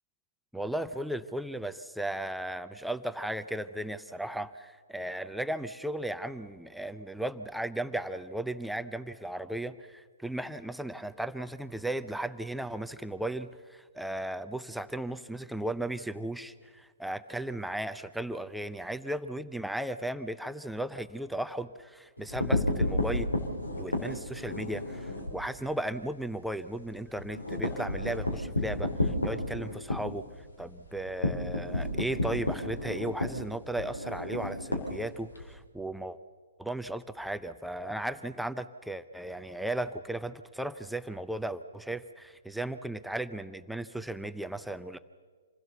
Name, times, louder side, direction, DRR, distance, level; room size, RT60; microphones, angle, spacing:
voice 1, 0.5-23.3 23.8-30.3 30.6-36.2 36.6-45.0, right 1 dB, ahead, 10 dB, 0.6 m, -36 dB
sound 1, 22.2-25.4 25.8-25.9 26.2-26.3 26.7-35.5, left 1 dB, 90° left, 3.3 m, -31 dB
26.5 x 16.5 x 6.9 m, 1.5 s
figure-of-eight pair, 125°, 0 cm